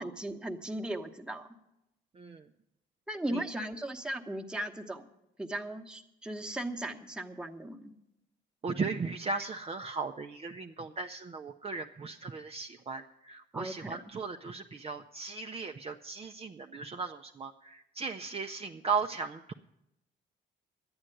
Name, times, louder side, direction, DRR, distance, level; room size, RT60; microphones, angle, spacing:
voice 1, 0.0-1.5 3.1-5.0 5.4-7.9 13.5-14.0, right 1 dB, 5° right, 2 dB, 1.1 m, -37 dB
voice 2, 2.1-2.5 3.3-3.4 8.6-19.5, right 4 dB, 30° right, 5 dB, 0.5 m, -37 dB
11.0 x 8.8 x 7.8 m, 0.88 s
cardioid pair, 90°, 20 cm